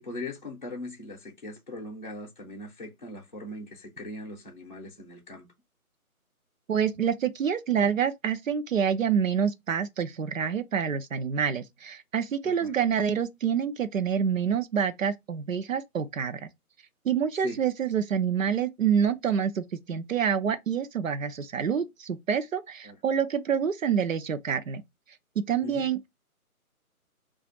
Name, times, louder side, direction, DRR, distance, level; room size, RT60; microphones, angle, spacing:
voice 1, 0.0-5.5 12.4-12.7 17.4-17.6 22.8-23.0 25.6-25.9, left 1 dB, 35° left, 0.6 m, -40 dB
voice 2, 6.7-16.5 17.0-24.8 25.5-26.1, right 7 dB, 65° right, 0.6 m, -27 dB
2.4 x 2.4 x 3.8 m
figure-of-eight pair, 150°, 44 cm